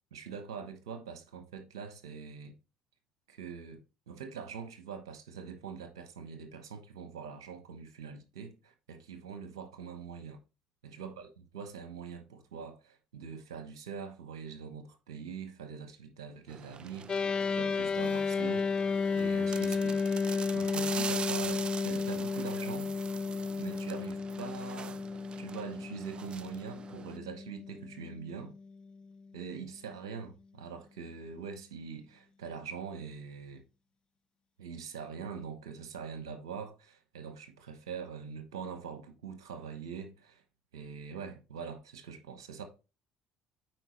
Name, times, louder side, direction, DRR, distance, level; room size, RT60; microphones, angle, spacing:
voice 1, 0.1-2.5 3.3-10.4 10.8-17.3 17.5-20.0 20.5-22.9 23.3-28.5 29.3-33.6 34.6-40.4 40.7-42.6, right 6 dB, 85° right, 1.0 m, -43 dB
sound 1, 16.5-27.2, right 6 dB, 40° right, 0.5 m, -43 dB
sound 2, 17.1-28.6, left 5 dB, 35° left, 0.4 m, -33 dB
9.0 x 4.6 x 3.2 m
hypercardioid pair, 60°, 3 cm